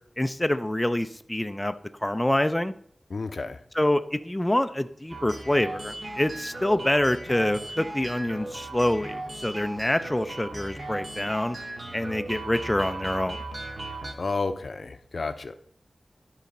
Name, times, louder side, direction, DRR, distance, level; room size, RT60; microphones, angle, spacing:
voice 1, 0.2-1.7 2.0-2.7 3.7-11.6 11.9-13.4, left 1 dB, 15° left, 9 dB, 0.4 m, -26 dB
voice 2, 3.1-3.6 14.2-15.5, left 3 dB, 65° left, 10 dB, 0.6 m, -31 dB
sound 1, 5.1-14.1, right 2 dB, 55° right, 1.7 m, -37 dB
11.5 x 4.1 x 5.4 m, 0.62 s
wide cardioid pair, 80°, 0 cm